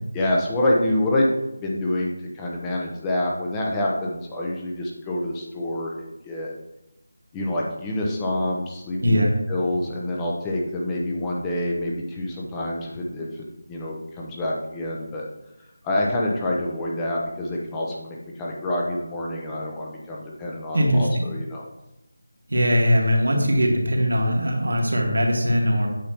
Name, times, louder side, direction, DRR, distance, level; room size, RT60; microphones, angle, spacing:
voice 1, 0.1-1.3 1.6-6.5 7.3-9.2 9.5-15.3 15.8-21.6, left 1 dB, 10° left, -3 dB, 0.8 m, -27 dB
voice 2, 9.0-9.3 20.7-21.3 22.5-25.9, equal, 75° right, 1 dB, 1.8 m, -20 dB
8.4 x 5.5 x 3.0 m, 0.91 s
figure-of-eight pair, 165°, 0 cm